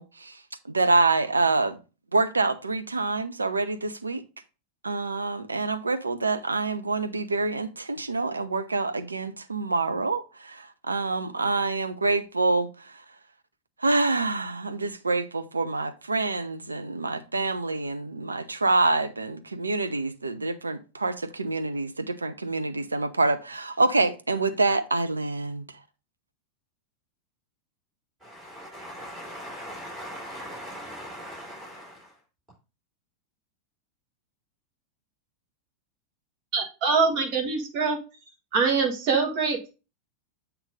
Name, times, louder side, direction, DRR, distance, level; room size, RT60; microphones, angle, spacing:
voice 1, 0.0-1.8 2.1-4.2 4.8-13.0 13.8-25.6, right 3 dB, 80° right, 0.6 m, -26 dB
voice 2, 28.2-32.1, equal, 15° right, 4.0 m, -40 dB
voice 3, 36.5-38.0 38.5-39.7, right 4 dB, 40° right, 1.7 m, -24 dB
8.0 x 3.0 x 5.0 m
figure-of-eight pair, 90°, 0 cm